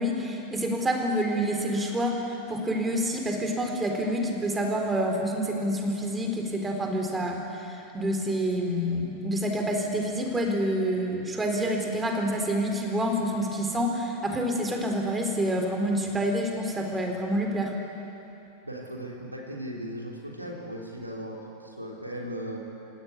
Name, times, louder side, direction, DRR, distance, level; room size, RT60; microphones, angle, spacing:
voice 1, 0.0-2.2 2.5-17.7, equal, 15° right, 2 dB, 4.0 m, -27 dB
voice 2, 18.6-22.6, equal, 85° right, -1 dB, 3.4 m, -37 dB
28.0 x 17.0 x 9.7 m, 2.9 s
figure-of-eight pair, 90°, 0 cm